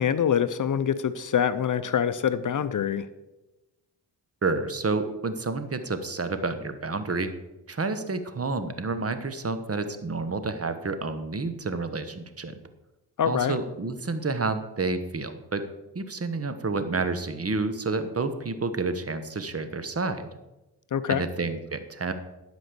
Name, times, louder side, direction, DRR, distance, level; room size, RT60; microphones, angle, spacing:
voice 1, 0.0-3.1 13.2-13.6 20.9-21.2, left 8 dB, 45° left, 13 dB, 0.6 m, -25 dB
voice 2, 4.4-7.3 7.7-12.5 13.3-15.6 15.9-20.3 21.1-22.1, right 3 dB, 35° right, 10 dB, 1.2 m, -29 dB
11.0 x 5.2 x 6.8 m, 1.0 s
supercardioid pair, 50°, 42 cm